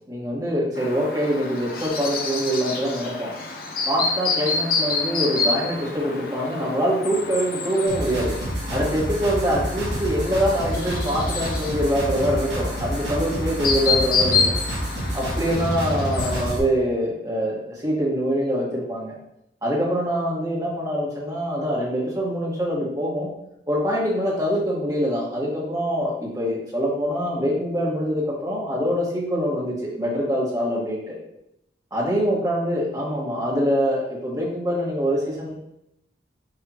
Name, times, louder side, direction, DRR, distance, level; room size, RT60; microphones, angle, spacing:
voice 1, 0.1-3.3 3.9-8.3 8.7-14.5 15.1-19.2 19.6-23.3 23.7-31.2 31.9-35.5, equal, 20° right, -5 dB, 1.8 m, -24 dB
Chirp tweet, 0.8-16.5, left 4 dB, 50° left, 0.9 m, -28 dB
sound 1, 7.9-16.6, equal, 65° right, 2.0 m, -28 dB
9.7 x 3.6 x 3.1 m, 0.79 s
head